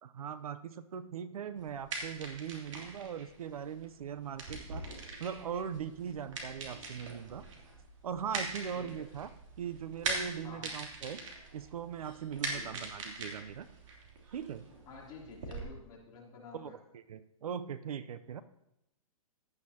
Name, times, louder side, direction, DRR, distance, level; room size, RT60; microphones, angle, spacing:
voice 1, 0.0-4.9 5.2-7.4 8.0-9.3 9.6-11.2 11.5-13.7 14.3-14.7 16.5-18.4, right 8 dB, 80° right, 13 dB, 0.7 m, -40 dB
sound 1, 1.6-15.6, right 3 dB, 60° right, 3.1 m, -42 dB
voice 2, 8.7-9.0 10.4-10.7 12.5-12.8 14.9-16.8, left 4 dB, 20° left, -5 dB, 3.1 m, -50 dB
16.0 x 10.5 x 2.9 m, 0.84 s
hypercardioid pair, 165°, 18 cm